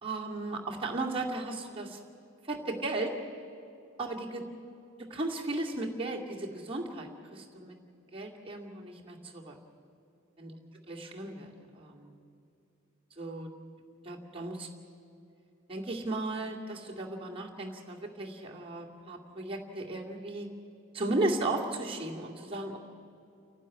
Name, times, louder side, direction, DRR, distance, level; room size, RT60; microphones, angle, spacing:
voice 1, 0.0-2.0 2.5-3.2 4.0-4.4 5.0-7.8 8.1-9.6 10.4-10.5 10.9-12.2 13.2-13.5 14.0-14.7 15.7-20.5 20.9-22.8, right 2 dB, 25° right, -2 dB, 2.3 m, -35 dB
30.0 x 12.0 x 9.8 m, 2.6 s
head